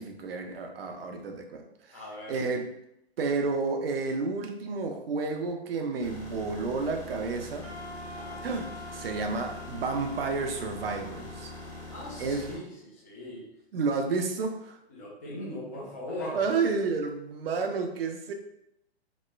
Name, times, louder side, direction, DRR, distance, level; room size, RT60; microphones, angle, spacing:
voice 1, 0.0-2.0 2.3-2.7 3.2-7.7 8.4-11.5 12.2-12.6 13.7-14.8 16.3-18.3, right 4 dB, 60° right, 4 dB, 0.5 m, -31 dB
voice 2, 1.9-2.4 8.1-8.4 11.9-13.4 14.9-16.4, left 1 dB, 15° left, -5 dB, 0.3 m, -39 dB
sound 1, 6.0-12.6, left 2 dB, 80° left, 1.1 m, -43 dB
Wind instrument woodwind instrument, 7.6-12.7, left 1 dB, 55° left, 1.2 m, -46 dB
3.0 x 2.1 x 2.3 m, 0.82 s
figure-of-eight pair, 120°, 33 cm